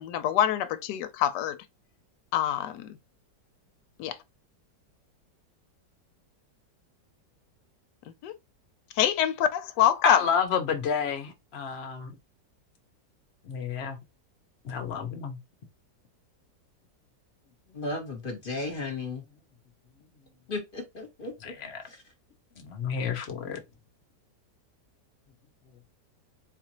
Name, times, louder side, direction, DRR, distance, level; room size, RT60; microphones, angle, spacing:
voice 1, 0.0-1.6 2.3-3.0 4.0-4.2 8.2-8.3 9.0-10.2, left 10 dB, 75° left, 1.2 m, -25 dB
voice 2, 10.0-12.2 13.5-14.0 14.6-15.4 21.6-21.8 22.6-23.6, left 6 dB, 50° left, 0.8 m, -29 dB
voice 3, 17.7-19.2 20.5-21.5 21.9-22.0, left 3 dB, 35° left, 1.2 m, -35 dB
4.4 x 2.5 x 2.9 m
omnidirectional pair, 1.9 m